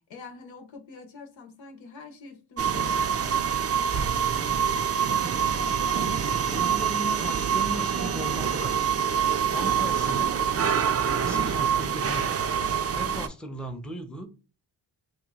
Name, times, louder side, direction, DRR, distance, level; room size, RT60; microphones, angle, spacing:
voice 1, 0.1-3.5, left 4 dB, 90° left, 0.9 m, -45 dB
sound 1, 2.6-13.3, right 7 dB, 35° right, 0.4 m, -25 dB
voice 2, 6.2-8.8 9.5-10.4 11.0-12.4 12.9-14.3, right 1 dB, ahead, 0.6 m, -37 dB
3.0 x 2.3 x 3.5 m
cardioid pair, 55°, 45 cm